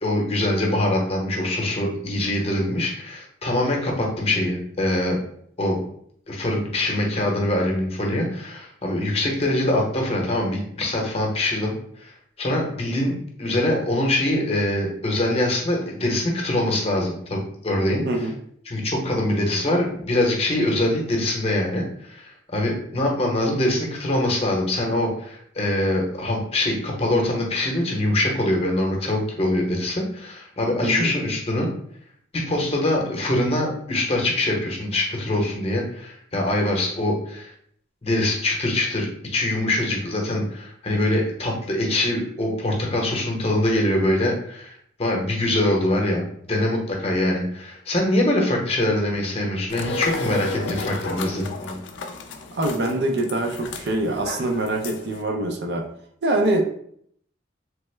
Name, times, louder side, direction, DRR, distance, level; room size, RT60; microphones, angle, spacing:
voice 1, 0.0-5.2 5.6-5.8 6.3-11.7 12.0-18.0 18.7-31.7 32.3-37.5 38.0-51.8, left 1 dB, 35° left, -1 dB, 0.7 m, -23 dB
sound 1, 49.7-55.2, left 3 dB, 85° left, 0.4 m, -33 dB
voice 2, 52.5-55.9 56.2-56.8, right 1 dB, 60° right, 3 dB, 0.5 m, -24 dB
3.3 x 2.0 x 3.1 m, 0.65 s
head